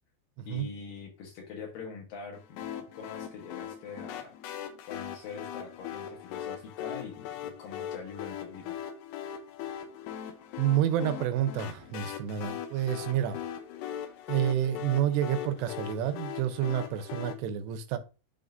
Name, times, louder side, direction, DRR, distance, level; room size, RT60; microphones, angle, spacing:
voice 1, 0.5-4.3 4.8-8.8, left 5 dB, 65° left, 2.5 m, -44 dB
sound 1, 2.6-17.3, left 9 dB, 85° left, 2.9 m, -40 dB
voice 2, 10.6-13.4 14.3-18.0, right 11 dB, 85° right, 2.9 m, -29 dB
10.5 x 3.7 x 2.6 m
omnidirectional pair, 4.8 m